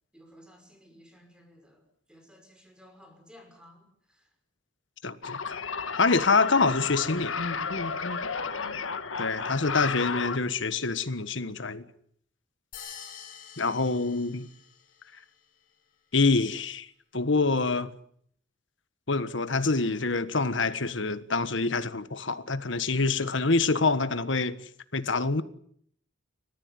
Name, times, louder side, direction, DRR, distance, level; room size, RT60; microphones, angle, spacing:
voice 1, 0.1-4.3 8.5-9.1, left 1 dB, 5° right, 5.6 m, -55 dB
voice 2, 5.0-5.6 6.0-7.3 9.2-11.8 13.6-14.5 16.1-16.9 17.1-17.9 19.1-24.6 24.9-25.4, left 3 dB, 70° left, 1.5 m, -26 dB
sound 1, 5.2-10.4, left 5 dB, 85° left, 1.7 m, -32 dB
sound 2, 12.7-15.0, left 8 dB, 45° left, 5.3 m, -46 dB
29.5 x 14.5 x 9.6 m
head